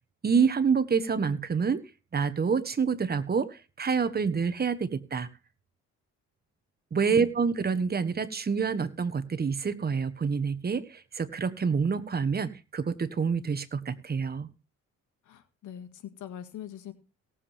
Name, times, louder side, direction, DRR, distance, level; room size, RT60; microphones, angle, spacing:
voice 1, 0.2-1.8 2.1-5.3 6.9-14.5, right 5 dB, 30° right, 12 dB, 1.3 m, -27 dB
voice 2, 15.3-16.9, left 9 dB, 80° left, 8 dB, 1.9 m, -42 dB
18.0 x 7.5 x 3.5 m, 0.31 s
cardioid pair, 90°, 30 cm